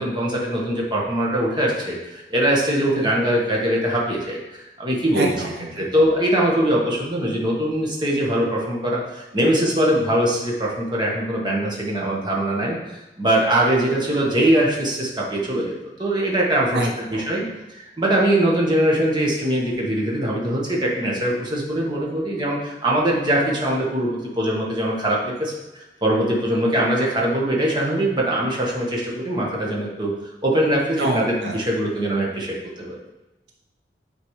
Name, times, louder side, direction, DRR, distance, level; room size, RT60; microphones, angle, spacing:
voice 1, 0.0-5.3 5.8-15.7 16.0-17.4 17.7-30.1 30.4-33.0, right 1 dB, 25° right, -3 dB, 1.3 m, -22 dB
voice 2, 5.1-5.8 16.7-17.2 31.0-31.6, right 1 dB, 70° right, 1 dB, 0.7 m, -26 dB
8.6 x 4.3 x 3.2 m, 1.0 s
head